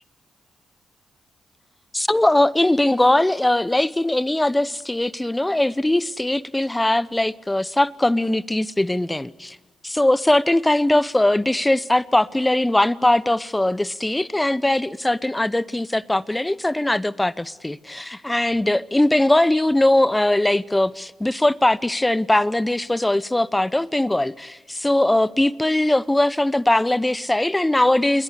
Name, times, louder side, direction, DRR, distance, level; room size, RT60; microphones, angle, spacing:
voice 1, 1.9-9.6 9.8-28.2, left 1 dB, 15° left, 0.9 m, -20 dB
28.0 x 21.5 x 8.1 m
supercardioid pair, 45°, 0 cm